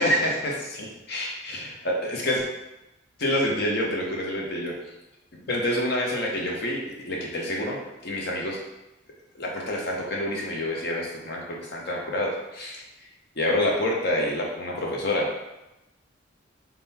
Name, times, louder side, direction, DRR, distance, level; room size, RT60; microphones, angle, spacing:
voice 1, 0.0-2.4 3.2-4.7 5.5-6.8 7.1-8.6 9.3-11.4 11.7-12.8 13.4-15.3, left 1 dB, 55° left, -2 dB, 0.8 m, -27 dB
3.7 x 2.2 x 4.0 m, 0.97 s
head